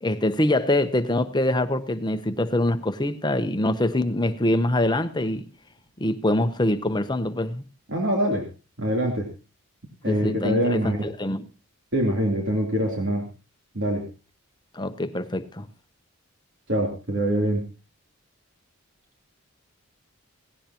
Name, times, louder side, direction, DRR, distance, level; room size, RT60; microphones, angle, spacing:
voice 1, 0.0-5.5 6.0-7.6 10.0-11.5 14.7-15.7, left 1 dB, 20° left, 0.9 m, -24 dB
voice 2, 7.9-8.5 8.8-9.3 10.0-11.0 11.9-13.3 13.7-14.1 16.7-17.7, equal, 55° right, 3.2 m, -24 dB
17.5 x 17.0 x 3.0 m
head